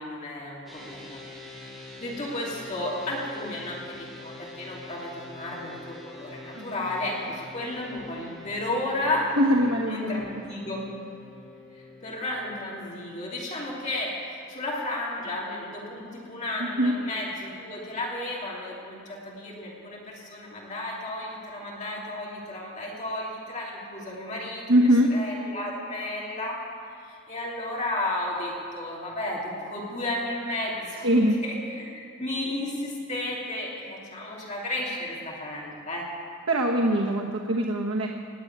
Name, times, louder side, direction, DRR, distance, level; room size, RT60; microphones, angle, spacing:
voice 1, 0.0-9.3 9.9-10.8 11.7-24.7 25.1-26.6 27.0-36.1, left 1 dB, 35° left, -4 dB, 3.0 m, -33 dB
sound 1, 0.7-12.8, left 2 dB, ahead, 4.4 m, -45 dB
voice 2, 6.5-6.9 9.4-10.7 16.6-17.0 24.7-25.1 31.0-31.4 36.5-38.1, equal, 85° right, -1 dB, 1.3 m, -23 dB
18.5 x 7.3 x 9.4 m, 2.6 s
head